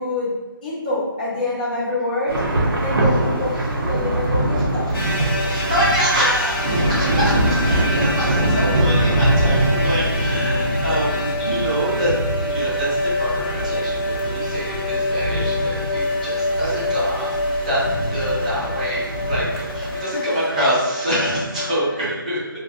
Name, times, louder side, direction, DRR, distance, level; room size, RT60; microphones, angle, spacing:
voice 1, 0.0-2.5 2.8-4.9, left 2 dB, 20° left, -8 dB, 0.6 m, -26 dB
Thunder / Rain, 2.3-20.0, right 1 dB, 80° right, 0.6 m, -23 dB
sound 1, 4.9-22.0, left 1 dB, 85° left, 0.8 m, -26 dB
voice 2, 5.5-12.1 12.4-12.9 13.2-17.3 17.6-17.8 18.1-22.5, equal, 20° right, -8 dB, 0.6 m, -25 dB
2.5 x 2.0 x 2.4 m, 1.2 s
figure-of-eight pair, 170°, 12 cm